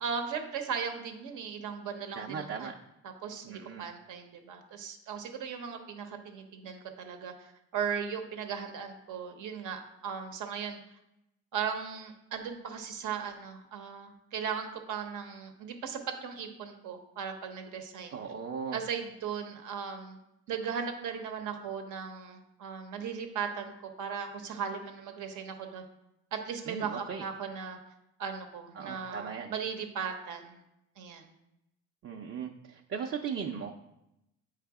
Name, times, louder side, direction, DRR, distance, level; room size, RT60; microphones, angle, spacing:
voice 1, 0.0-2.7 3.0-10.8 11.5-18.2 18.7-20.2 20.5-25.8 26.3-27.8 28.2-30.6 31.0-31.3, right 6 dB, 80° right, 5 dB, 1.0 m, -37 dB
voice 2, 2.2-2.7 3.4-3.8 18.1-18.8 26.7-27.2 28.8-29.5 32.0-33.7, right 6 dB, 45° right, 1 dB, 0.6 m, -37 dB
8.6 x 3.3 x 4.8 m, 0.86 s
cardioid pair, 90°, 30 cm